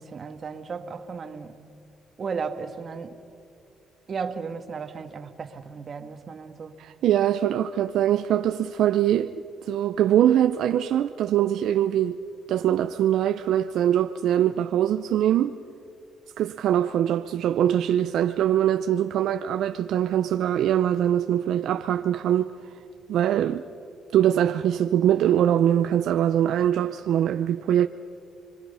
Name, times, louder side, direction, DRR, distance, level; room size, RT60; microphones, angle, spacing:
voice 1, 0.0-1.6 2.2-3.2 4.1-6.8, right 5 dB, 45° right, 1.8 m, -35 dB
voice 2, 6.8-12.2 12.5-15.6 16.4-22.5 23.1-23.6 24.1-27.9, right 11 dB, 75° right, 0.6 m, -23 dB
29.5 x 23.5 x 5.6 m
cardioid pair, 90°, 0 cm